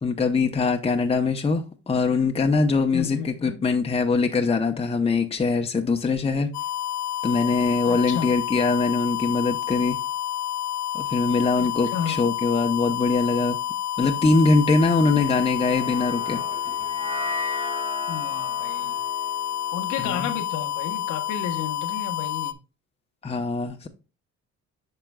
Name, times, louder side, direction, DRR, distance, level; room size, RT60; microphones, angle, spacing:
voice 1, 0.0-6.5 7.2-10.0 10.9-13.6 14.0-16.4 20.0-20.3 23.2-23.9, left 4 dB, 20° left, 0.7 m, -22 dB
voice 2, 2.9-3.6 7.9-8.3 11.6-12.2 18.1-18.9 19.7-22.6, left 8 dB, 90° left, 1.1 m, -32 dB
sound 1, 6.5-22.5, left 11 dB, 65° left, 0.6 m, -29 dB
sound 2, 15.2-21.6, equal, 20° right, 1.0 m, -37 dB
8.7 x 5.8 x 2.2 m
cardioid pair, 90°, 30 cm